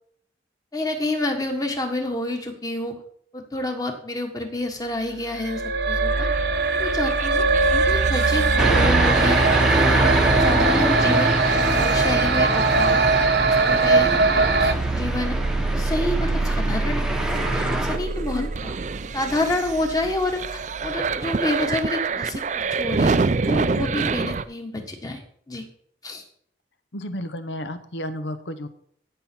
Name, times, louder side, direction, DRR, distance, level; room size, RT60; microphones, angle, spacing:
voice 1, 0.7-2.9 3.3-6.3 6.7-7.4 7.8-9.4 9.7-10.0 10.4-13.0 13.6-15.4 15.7-18.7 19.1-25.2 25.5-25.6 26.0-26.2, left 2 dB, 20° left, 4 dB, 1.4 m, -28 dB
sound 1, 5.3-14.7, right 4 dB, 65° right, 0.9 m, -21 dB
sound 2, 6.1-24.4, right 4 dB, 40° right, 0.4 m, -27 dB
voice 2, 7.5-7.9 18.2-18.5 26.9-28.7, left 1 dB, 80° left, 10 dB, 1.0 m, -32 dB
sound 3, 8.6-18.0, equal, 5° right, 0.9 m, -25 dB
16.0 x 5.7 x 4.5 m, 0.63 s
head